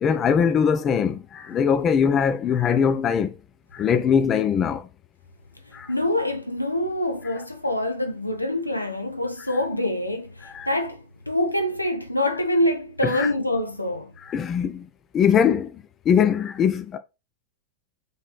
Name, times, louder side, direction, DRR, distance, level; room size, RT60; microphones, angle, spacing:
voice 1, 0.0-3.3 3.7-4.9 5.7-5.9 10.4-10.7 13.0-13.3 14.2-14.9 15.1-17.0, left 7 dB, 25° left, 0.4 m, -21 dB
voice 2, 5.9-14.1, left 1 dB, 85° left, 0.7 m, -25 dB
6.4 x 3.1 x 2.3 m
figure-of-eight pair, 90°, 0 cm